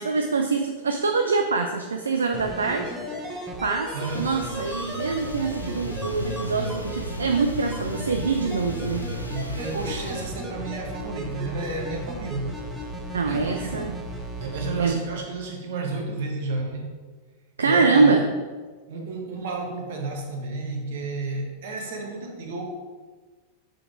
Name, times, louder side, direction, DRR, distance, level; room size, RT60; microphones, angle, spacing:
voice 1, 0.0-2.9 3.2-9.0 13.1-13.9 14.8-15.0 17.6-18.2, right 4 dB, 70° right, 5 dB, 0.4 m, -24 dB
sound 1, 2.3-14.9 15.2-15.3, equal, 5° right, 1.1 m, -35 dB
voice 2, 3.9-4.3 9.3-12.5 13.2-13.9 14.4-17.0 17.6-18.2 18.9-22.6, right 3 dB, 55° right, 2 dB, 1.3 m, -31 dB
sound 2, 4.0-10.3, left 1 dB, 85° left, 0.5 m, -36 dB
6.6 x 4.0 x 4.9 m, 1.4 s
figure-of-eight pair, 90°, 0 cm